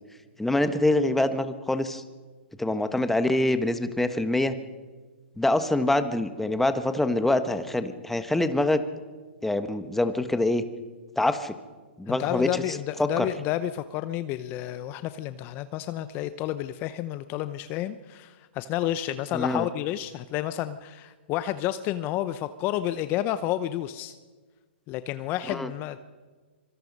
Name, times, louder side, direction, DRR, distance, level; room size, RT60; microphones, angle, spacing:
voice 1, 0.4-2.0 2.6-4.5 5.4-8.8 9.4-10.6 11.2-11.5 12.0-12.6 13.0-13.3 19.3-19.6 25.5-25.7, left 1 dB, 5° left, 9 dB, 1.4 m, -25 dB
voice 2, 12.1-24.2 24.9-26.0, left 13 dB, 35° left, 12 dB, 0.8 m, -30 dB
25.5 x 24.0 x 5.5 m, 1.4 s
hypercardioid pair, 130°, 6 cm